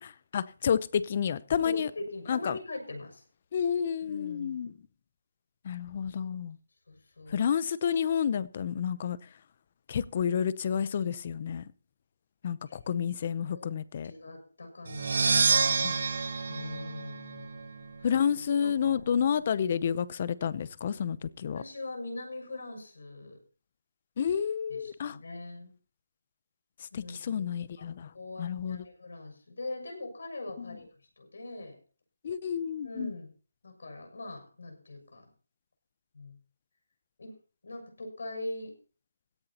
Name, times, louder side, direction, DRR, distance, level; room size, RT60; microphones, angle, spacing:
voice 1, 0.0-1.9 2.3-2.6 3.5-4.7 5.6-6.6 7.3-9.2 9.9-11.7 12.4-14.1 15.8-15.9 18.0-21.6 24.2-25.2 26.9-28.1 28.4-28.8 30.6-30.8 32.2-33.1, left 8 dB, 30° left, 0.7 m, -30 dB
voice 2, 1.6-3.2 4.0-4.6 6.9-7.4 13.5-13.7 14.0-18.1 18.6-19.0 21.5-23.4 24.7-25.7 26.9-27.5 27.8-27.9 28.1-30.9 31.2-31.8 32.8-33.3 33.6-35.3 36.1-36.3 37.2-37.3 37.6-38.7, left 2 dB, 70° left, 6.9 m, -42 dB
sound 1, 14.9-17.7, right 5 dB, 45° right, 1.3 m, -28 dB
17.0 x 14.5 x 2.9 m
hypercardioid pair, 175°, 0 cm